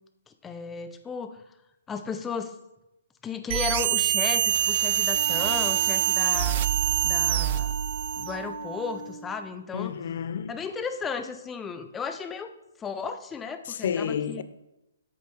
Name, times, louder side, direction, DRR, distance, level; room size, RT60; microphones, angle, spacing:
voice 1, 0.3-1.4 1.9-2.5 3.2-6.6 7.0-7.7 8.2-9.9 10.5-12.5 12.8-14.4, left 5 dB, 15° left, 0.6 m, -34 dB
sound 1, 3.5-8.4, right 12 dB, 45° right, 0.4 m, -25 dB
Wind instrument woodwind instrument, 5.1-9.4, right 4 dB, 70° right, 1.3 m, -37 dB
voice 2, 9.7-10.5 13.7-14.4, left 8 dB, 60° left, 0.5 m, -30 dB
8.4 x 4.4 x 5.1 m
hypercardioid pair, 135°, 0 cm